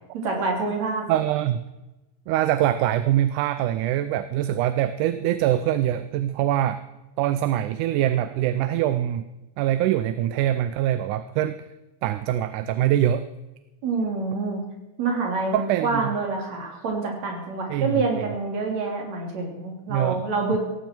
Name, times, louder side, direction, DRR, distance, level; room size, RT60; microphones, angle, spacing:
voice 1, 0.2-1.0 13.8-14.6 15.0-20.6, right 3 dB, 60° right, 1 dB, 4.3 m, -27 dB
voice 2, 1.1-1.6 2.3-6.8 7.2-9.3 9.6-11.6 12.0-13.3 15.5-16.1 17.7-18.0 19.9-20.2, right 12 dB, 80° right, 12 dB, 2.1 m, -23 dB
17.5 x 15.0 x 4.5 m, 1.0 s
omnidirectional pair, 3.6 m